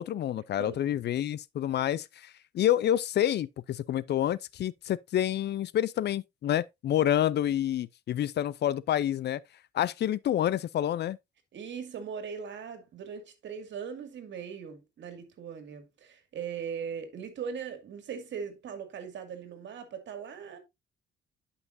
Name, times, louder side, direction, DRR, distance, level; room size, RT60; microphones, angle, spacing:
voice 1, 0.0-9.4 9.7-11.2, left 11 dB, 60° left, 0.5 m, -28 dB
voice 2, 11.5-20.6, right 7 dB, 65° right, 2.1 m, -39 dB
10.5 x 5.6 x 2.6 m
cardioid pair, 90°, 20 cm